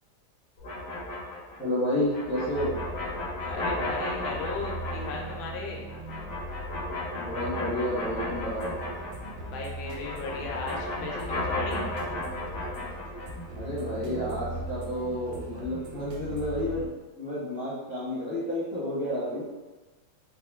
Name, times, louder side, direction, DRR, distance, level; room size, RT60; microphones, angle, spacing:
sound 1, 0.6-9.5 9.8-13.4, left 2 dB, 55° left, 1.4 m, -35 dB
voice 1, 1.6-2.7 7.1-8.7 13.5-16.9 17.2-19.4, left 1 dB, 10° right, -11 dB, 0.4 m, -30 dB
sound 2, 2.5-16.9, right 2 dB, 70° right, 0.9 m, -40 dB
voice 2, 3.5-5.9 9.5-11.9, left 3 dB, 80° left, -1 dB, 1.5 m, -36 dB
sound 3, 8.3-16.6, right 1 dB, 90° right, 1.5 m, -45 dB
3.7 x 2.1 x 3.4 m, 1.2 s
omnidirectional pair, 2.1 m